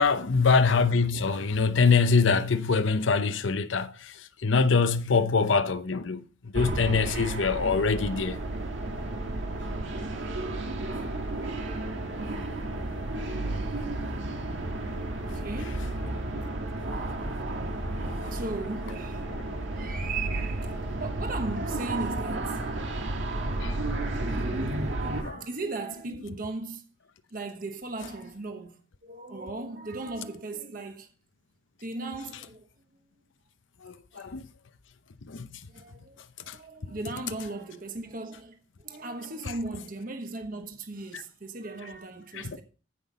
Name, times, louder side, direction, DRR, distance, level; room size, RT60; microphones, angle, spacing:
voice 1, 0.0-4.1 4.4-6.2 6.5-8.4 19.3-19.4 23.6-23.7 24.5-24.6 25.2-25.4 33.8-34.4 35.3-35.5 36.5-36.6, left 4 dB, 75° left, 0.7 m, -24 dB
sound 1, 6.5-25.2, right 2 dB, 75° right, 1.9 m, -32 dB
voice 2, 14.9-16.5 18.0-19.5 19.7-26.8 27.3-31.1 31.8-32.7 34.1-34.3 35.7-42.6, right 3 dB, 45° right, 1.2 m, -38 dB
14.5 x 5.9 x 4.1 m
head